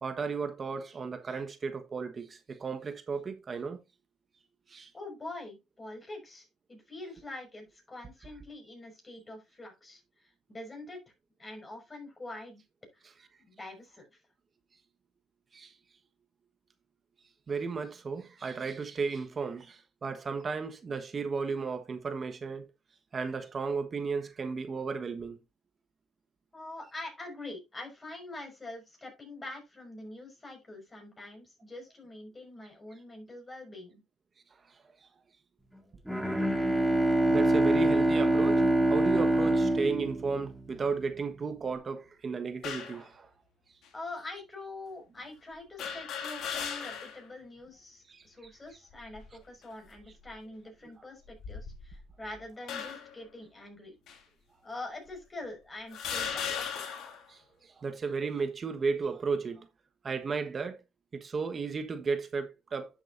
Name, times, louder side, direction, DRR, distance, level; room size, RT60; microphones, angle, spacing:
voice 1, 0.0-3.8 4.7-4.9 15.5-15.7 17.5-22.6 23.1-25.4 37.3-43.3 48.1-48.2 50.8-50.9 57.3-59.7 60.0-60.8 61.1-62.9, right 5 dB, 35° right, 1.3 m, -34 dB
voice 2, 4.9-11.0 11.4-12.6 12.9-13.1 13.4-14.2 26.5-34.0 43.9-54.0 54.6-56.8, left 2 dB, 20° left, 5.8 m, -45 dB
Bowed string instrument, 36.1-41.0, right 1 dB, ahead, 2.1 m, -25 dB
sound 1, 42.6-43.0 43.8-43.9 45.8-47.2 47.7-47.8 48.9-49.4 50.0-50.3 51.2-52.1 52.7-53.2 54.1-54.2 55.1-55.2 55.9-57.2, left 7 dB, 65° left, 2.4 m, -37 dB
11.0 x 7.8 x 2.6 m
supercardioid pair, 90°, 0 cm